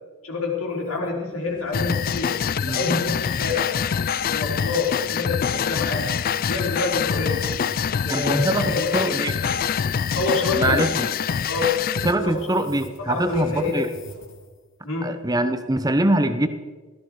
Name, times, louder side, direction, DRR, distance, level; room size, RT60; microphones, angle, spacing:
voice 1, 0.2-3.7 4.2-6.1 6.5-7.5 8.0-9.3 10.1-10.8 11.5-11.9 12.2-12.6 13.0-13.9 14.8-15.2, left 4 dB, 90° left, -1 dB, 4.0 m, -27 dB
sound 1, 0.7-14.6, left 1 dB, 70° left, 2.7 m, -44 dB
sound 2, 1.7-12.1, left 7 dB, 45° left, 0.3 m, -25 dB
voice 2, 8.1-9.4 10.6-11.1 12.0-13.9 15.0-16.5, right 1 dB, 20° right, 10 dB, 0.9 m, -23 dB
16.0 x 13.5 x 4.8 m, 1.3 s
head